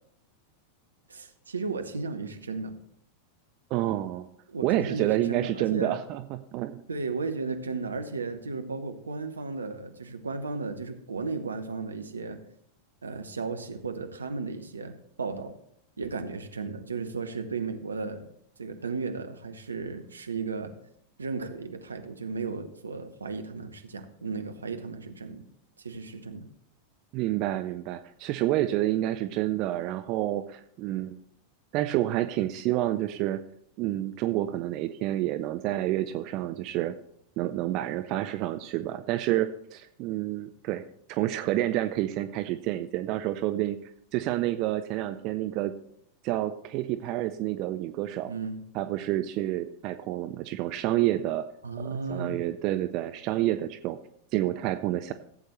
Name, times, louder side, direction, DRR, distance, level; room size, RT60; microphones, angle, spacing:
voice 1, 1.1-2.7 4.5-6.0 6.9-12.4 13.0-15.6 16.0-18.3 18.6-20.7 21.2-25.4 25.8-26.5 48.3-48.6 51.6-52.4, right 4 dB, 75° right, 7 dB, 1.0 m, -35 dB
voice 2, 3.7-4.3 4.6-6.8 27.1-31.2 31.7-33.4 33.8-36.9 37.4-40.8 41.1-43.8 44.1-45.7 46.2-48.3 48.7-51.5 51.8-54.0 54.3-55.1, right 14 dB, 40° right, 10 dB, 0.5 m, -29 dB
15.5 x 8.1 x 3.1 m, 0.70 s
figure-of-eight pair, 90°, 0 cm